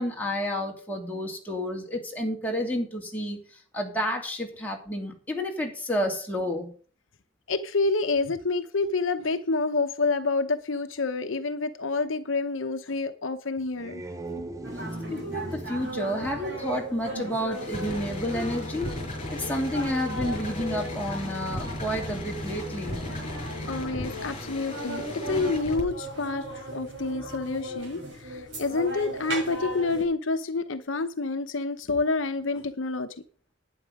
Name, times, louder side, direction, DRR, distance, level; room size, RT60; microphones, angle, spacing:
voice 1, 0.0-3.4 3.7-6.7 15.1-18.9 19.3-23.0, equal, 10° left, -1 dB, 2.7 m, -30 dB
voice 2, 7.5-14.0 23.7-33.1, left 3 dB, 70° left, 9 dB, 0.8 m, -28 dB
sound 1, 13.6-17.8, right 1 dB, 15° right, 0.7 m, -40 dB
sound 2, 14.6-30.0, equal, 65° right, 6.6 m, -37 dB
sound 3, 17.5-25.8, left 1 dB, 30° left, 6.7 m, -36 dB
11.5 x 9.4 x 5.3 m, 0.43 s
head